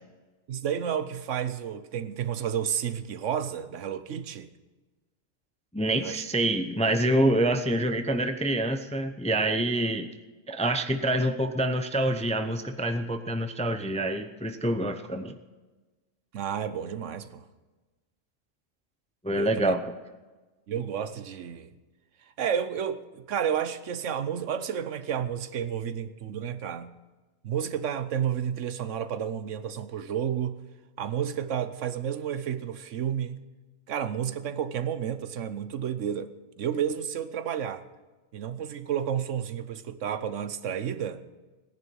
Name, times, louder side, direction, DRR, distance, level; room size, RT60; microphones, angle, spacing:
voice 1, 0.5-4.5 6.0-6.2 16.3-17.4 19.3-19.7 20.7-21.7 22.4-26.9 27.4-30.6 31.0-33.4 33.9-36.3 36.6-37.8 38.3-41.2, right 8 dB, 75° right, 1.1 m, -31 dB
voice 2, 5.7-10.1 10.5-15.4 19.2-19.8, right 1 dB, 10° left, 0.5 m, -26 dB
18.0 x 10.5 x 6.3 m
omnidirectional pair, 1.3 m